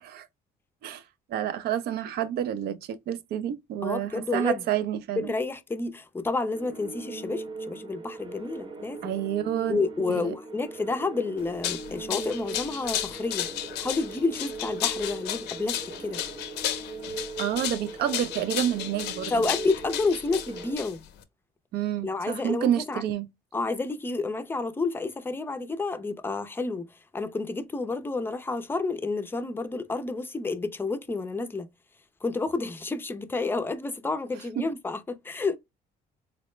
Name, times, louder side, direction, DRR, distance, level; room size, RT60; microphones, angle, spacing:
voice 1, 1.3-5.3 9.0-9.8 10.1-10.3 17.4-19.5 21.7-23.3, right 10 dB, 70° right, 0.5 m, -29 dB
voice 2, 3.8-4.6 5.2-9.2 9.7-16.2 19.3-21.0 22.0-23.0 23.5-26.9 27.1-31.7 32.2-35.6, left 3 dB, 15° left, 0.4 m, -30 dB
sound 1, 6.5-20.8, right 3 dB, 30° right, 0.8 m, -40 dB
sound 2, 11.4-21.2, left 12 dB, 85° left, 0.5 m, -33 dB
3.9 x 2.1 x 3.0 m
cardioid pair, 110°, 17 cm